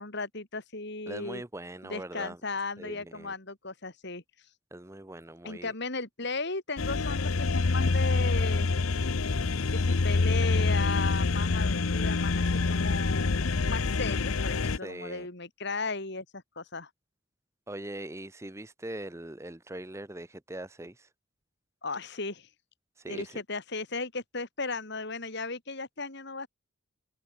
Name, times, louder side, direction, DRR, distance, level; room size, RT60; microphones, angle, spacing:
voice 1, 0.0-1.4 1.8-4.2 5.4-8.7 9.7-16.9 21.8-22.5 23.1-26.5, left 3 dB, 55° left, 3.1 m, -36 dB
voice 2, 1.1-2.4 2.8-3.3 4.7-5.7 14.8-15.3 17.7-20.9 23.0-23.2, right 1 dB, 15° right, 0.8 m, -41 dB
sound 1, 6.8-14.8, left 3 dB, 80° left, 0.8 m, -26 dB
head